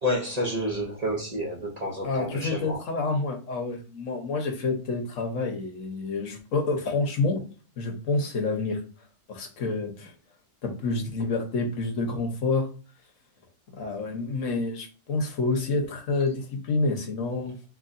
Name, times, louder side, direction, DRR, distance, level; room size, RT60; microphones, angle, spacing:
voice 1, 0.0-2.8, left 1 dB, 45° right, -1 dB, 0.5 m, -29 dB
voice 2, 2.0-7.4 7.8-8.8 9.3-10.1 10.6-12.7 13.7-17.5, left 3 dB, 60° left, 3 dB, 1.1 m, -28 dB
3.9 x 3.0 x 2.5 m, 0.38 s
omnidirectional pair, 1.8 m